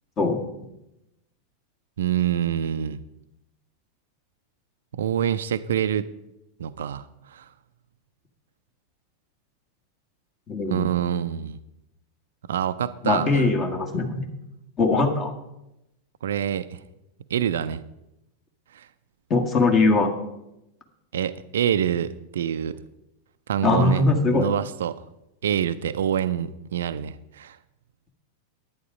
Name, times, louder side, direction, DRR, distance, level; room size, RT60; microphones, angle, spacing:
voice 1, 2.0-3.0 4.9-6.1 6.6-7.5 10.7-11.6 12.5-13.5 16.2-16.8 17.3-17.8 18.7-18.9 21.1-22.8 23.5-25.0 25.4-27.6, right 9 dB, 60° right, 12 dB, 0.4 m, -26 dB
voice 2, 10.5-10.9 13.0-14.3 14.8-15.3 19.3-20.1 23.6-24.5, left 3 dB, 30° left, 4 dB, 1.7 m, -21 dB
11.0 x 9.4 x 5.1 m, 0.87 s
figure-of-eight pair, 90°, 0 cm